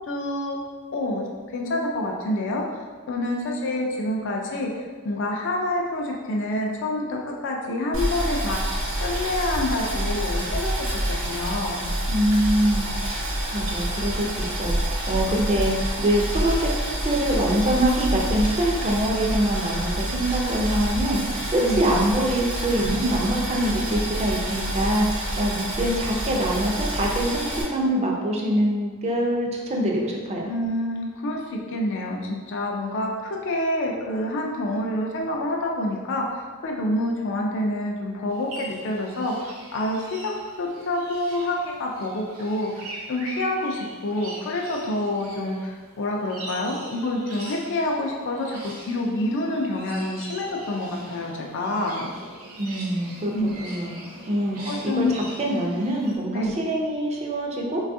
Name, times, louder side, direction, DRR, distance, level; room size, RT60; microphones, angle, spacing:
voice 1, 0.1-0.6 0.9-1.3 1.5-11.9 13.4-13.6 21.6-21.9 30.5-40.3 40.6-52.1 53.3-53.7 54.7-55.2 56.3-56.5, left 1 dB, 60° left, 0 dB, 0.4 m, -27 dB
Boiling, 7.9-27.6, right 1 dB, 70° right, 1.0 m, -27 dB
voice 2, 12.1-12.9 13.5-15.7 16.0-16.7 17.0-30.5 52.6-53.3 53.6-57.8, right 1 dB, 30° right, -1 dB, 0.4 m, -24 dB
sound 1, 38.3-56.2, right 1 dB, 85° right, 0.7 m, -42 dB
3.3 x 2.3 x 2.6 m, 1.4 s
head